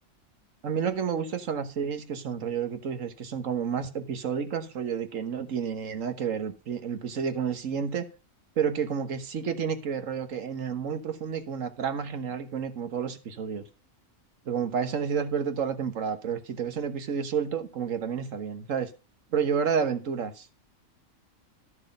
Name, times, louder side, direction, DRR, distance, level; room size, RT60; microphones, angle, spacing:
voice 1, 0.6-8.1 8.6-13.6 14.5-18.9 19.3-20.5, right 7 dB, 70° right, 1.6 m, -30 dB
12.5 x 6.5 x 5.3 m
omnidirectional pair, 1.4 m